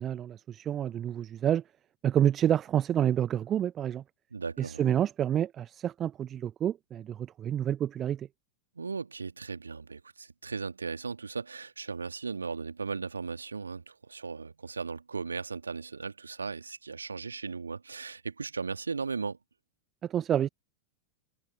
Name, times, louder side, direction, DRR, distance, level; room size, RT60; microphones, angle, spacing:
voice 1, 0.0-1.6 2.0-4.0 4.6-8.3 20.0-20.5, right 10 dB, 25° right, 0.8 m, -28 dB
voice 2, 4.3-4.8 8.8-19.4, right 4 dB, 75° right, 2.4 m, -37 dB
figure-of-eight pair, 90°, 0 cm